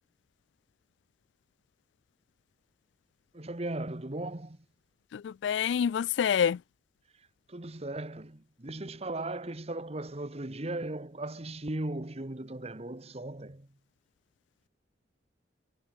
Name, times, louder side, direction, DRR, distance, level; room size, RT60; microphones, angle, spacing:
voice 1, 3.3-4.6 7.5-13.7, right 2 dB, 35° right, 1.4 m, -37 dB
voice 2, 5.4-6.6, left 8 dB, 85° left, 0.3 m, -26 dB
head